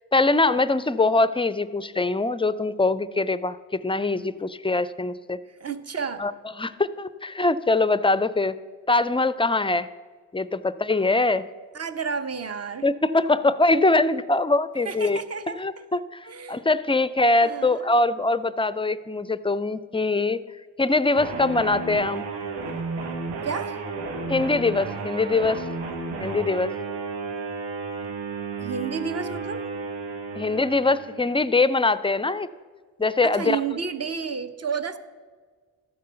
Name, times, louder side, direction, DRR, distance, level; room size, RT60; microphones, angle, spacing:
voice 1, 0.1-3.6 3.8-5.4 6.2-6.3 6.6-8.6 8.9-9.9 10.3-11.4 12.8-15.2 15.6-20.4 20.8-22.2 24.3-25.6 26.2-26.7 30.4-32.5 33.0-33.6, left 3 dB, 15° left, 16 dB, 0.4 m, -23 dB
voice 2, 5.5-6.3 11.7-12.9 14.8-15.6 16.2-16.7 17.4-17.9 23.4-23.8 28.6-29.6 33.2-35.0, right 6 dB, 40° right, 10 dB, 0.9 m, -31 dB
sound 1, 21.1-31.4, right 4 dB, 85° right, 1.6 m, -33 dB
13.0 x 4.8 x 6.8 m, 1.5 s
supercardioid pair, 55°, 40 cm